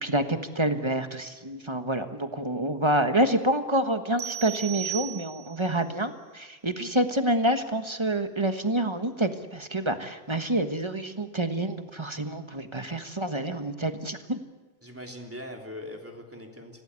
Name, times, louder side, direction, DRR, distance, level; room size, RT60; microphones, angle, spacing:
voice 1, 0.0-14.4, right 1 dB, 30° right, 7 dB, 1.4 m, -27 dB
sound 1, 4.2-5.7, right 12 dB, 75° right, 1.3 m, -36 dB
voice 2, 14.8-16.8, left 1 dB, 15° right, 1 dB, 3.3 m, -41 dB
26.0 x 18.0 x 8.4 m, 1.2 s
omnidirectional pair, 1.0 m